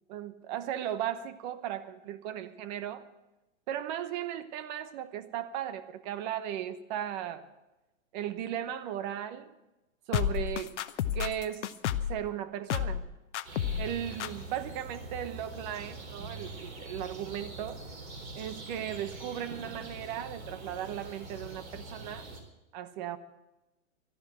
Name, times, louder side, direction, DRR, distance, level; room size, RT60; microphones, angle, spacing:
voice 1, 0.1-3.1 3.7-7.5 8.1-9.5 10.1-10.7 11.1-11.7 12.1-13.0 13.8-17.8 18.3-22.3 22.7-23.2, right 10 dB, 35° right, 1.0 m, -36 dB
sound 1, 10.1-12.2 12.7-13.1 13.3-13.9 14.2-14.3, left 10 dB, 60° left, 0.9 m, -31 dB
sound 2, 13.5-22.4, right 2 dB, 85° right, 4.3 m, -44 dB
13.0 x 10.5 x 7.4 m
hypercardioid pair, 145°, 40 cm